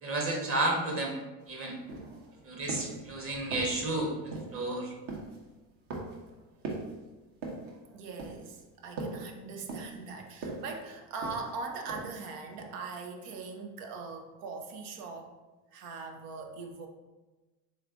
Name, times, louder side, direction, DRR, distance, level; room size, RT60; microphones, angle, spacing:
voice 1, 0.0-1.2 1.5-1.8 2.4-4.9, right 2 dB, 25° right, 0 dB, 1.1 m, -32 dB
sound 1, 1.4-1.5 1.9-2.3 2.7-3.0 3.5-3.9 4.3-4.7 5.1-5.4 5.9-6.3 6.6-7.0 7.4-7.7 8.2-8.6 9.0-9.3 9.7-10.1 10.4-10.7 11.2-11.6 11.9-12.3 12.6-12.7, right 3 dB, 55° right, 1.2 m, -39 dB
voice 2, 1.8-2.5 3.1-3.4 4.2-4.4 4.9-5.0 6.0-6.4 7.6-15.3 15.7-16.9, right 4 dB, 70° right, 3 dB, 0.8 m, -42 dB
3.7 x 3.2 x 3.6 m, 1.2 s
hypercardioid pair, 75°, 49 cm